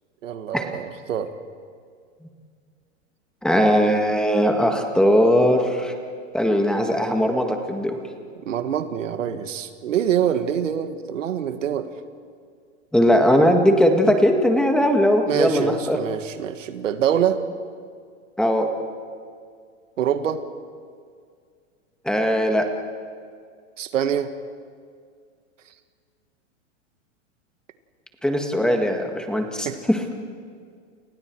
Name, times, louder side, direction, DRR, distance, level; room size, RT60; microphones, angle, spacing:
voice 1, 0.2-1.3 8.5-11.9 15.3-17.4 20.0-20.4 23.8-24.3 29.6-29.8, right 9 dB, 85° right, 8 dB, 1.9 m, -25 dB
voice 2, 3.4-5.9 6.3-8.0 12.9-16.0 18.4-18.7 22.1-22.7 28.2-30.0, equal, ahead, 3 dB, 1.8 m, -19 dB
29.5 x 29.5 x 4.7 m, 2.1 s
supercardioid pair, 145°, 37 cm